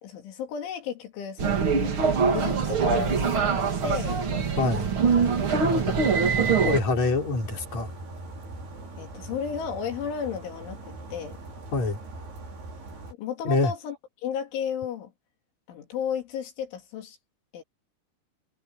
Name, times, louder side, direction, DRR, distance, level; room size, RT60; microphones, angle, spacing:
voice 1, 0.0-4.2 5.7-6.6 9.0-11.4 13.2-14.0 14.2-15.1 15.7-17.2 17.5-17.6, left 7 dB, 80° left, 5.2 m, -34 dB
sound 1, 1.4-6.8, right 5 dB, 40° right, 2.1 m, -23 dB
voice 2, 4.3-4.9 5.9-6.0 6.4-7.9 11.7-12.0 13.4-13.7, left 3 dB, 35° left, 6.3 m, -26 dB
sound 2, 4.4-13.1, right 2 dB, 55° right, 8.4 m, -41 dB
omnidirectional pair, 5.4 m